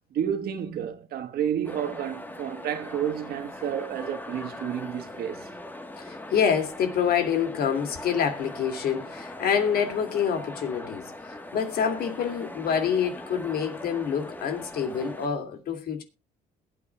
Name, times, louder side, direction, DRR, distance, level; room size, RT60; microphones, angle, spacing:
voice 1, 0.1-5.5, right 9 dB, 65° right, 1.5 m, -30 dB
sound 1, 1.6-15.3, left 1 dB, 10° left, 1.4 m, -41 dB
voice 2, 6.0-16.0, left 7 dB, 65° left, 2.5 m, -27 dB
21.0 x 8.7 x 2.3 m
cardioid pair, 110°, 17 cm